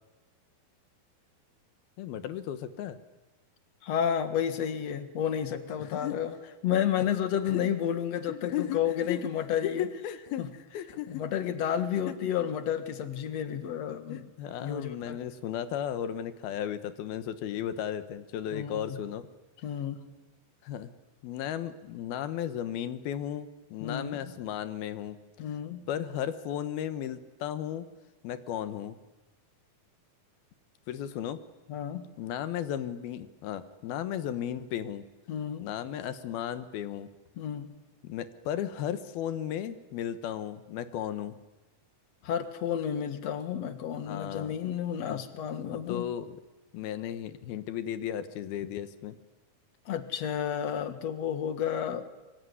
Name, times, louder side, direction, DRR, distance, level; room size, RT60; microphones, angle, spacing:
voice 1, 2.0-3.0 5.8-6.2 7.5-7.6 8.3-8.8 9.1-9.2 9.6-11.4 12.1-12.2 14.1-19.3 20.6-20.9 21.2-25.2 25.5-25.6 25.9-27.9 28.2-29.0 30.9-31.4 32.2-35.0 35.6-37.1 38.0-41.4 44.1-44.6 45.1-45.2 45.7-46.4 46.7-49.2, left 10 dB, 80° left, 12 dB, 3.0 m, -35 dB
voice 2, 3.8-6.3 6.6-9.9 10.4-10.5 11.1-14.3 14.6-15.2 18.5-19.0 19.6-20.0 23.8-24.3 25.4-25.8 31.7-32.1 35.3-35.7 37.4-37.7 42.2-46.1 49.9-52.1, left 9 dB, 50° left, 10 dB, 2.4 m, -31 dB
25.0 x 24.0 x 9.7 m, 1.1 s
omnidirectional pair, 4.4 m